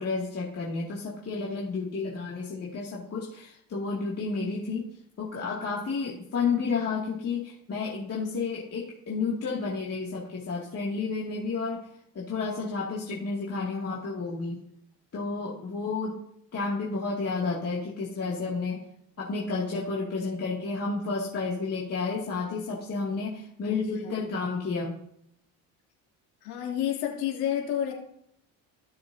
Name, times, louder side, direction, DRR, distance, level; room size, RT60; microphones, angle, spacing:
voice 1, 0.0-4.9 5.2-11.9 12.1-14.6 15.1-16.2 16.5-18.8 19.2-24.9, left 4 dB, 40° left, -5 dB, 2.5 m, -31 dB
voice 2, 26.4-27.9, left 10 dB, 90° left, -2 dB, 3.1 m, -30 dB
16.5 x 6.8 x 2.8 m, 0.72 s
supercardioid pair, 95°, 39 cm